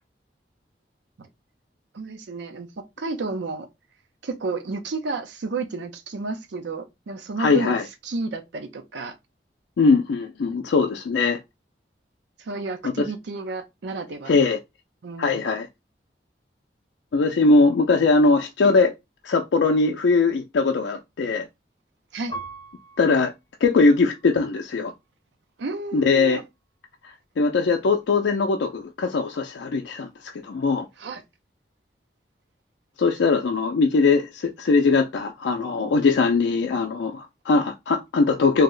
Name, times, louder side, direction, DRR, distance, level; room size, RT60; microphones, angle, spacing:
voice 1, 1.9-3.7 4.2-7.8 8.0-9.2 12.4-14.3 15.0-15.5 22.1-22.4 25.6-26.4 31.0-31.2, right 3 dB, 85° right, 0.5 m, -31 dB
voice 2, 7.4-7.8 9.8-11.4 12.8-12.9 14.3-14.6 15.2-15.7 17.1-18.9 19.2-21.5 23.0-23.3 23.6-24.9 25.9-26.4 27.4-30.9 33.0-38.6, left 4 dB, 90° left, 0.4 m, -20 dB
Piano, 22.3-25.1 25.7-26.4, right 2 dB, 30° left, 1.0 m, -43 dB
2.8 x 2.0 x 3.7 m
head